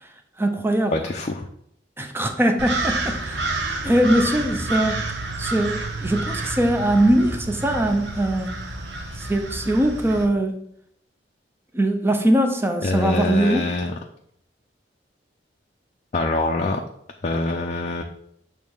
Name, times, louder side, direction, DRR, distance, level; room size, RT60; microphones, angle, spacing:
voice 1, 0.4-1.1 2.0-3.4 3.8-5.0 5.4-8.6 9.2-10.6 11.7-13.7, right 1 dB, 15° right, 5 dB, 0.7 m, -21 dB
voice 2, 0.9-1.4 12.8-13.9 16.1-16.8 17.2-18.0, left 2 dB, 40° left, 2 dB, 0.5 m, -24 dB
sound 1, 2.6-10.3, right 2 dB, 75° right, 0.9 m, -29 dB
6.5 x 3.2 x 5.4 m, 0.71 s
head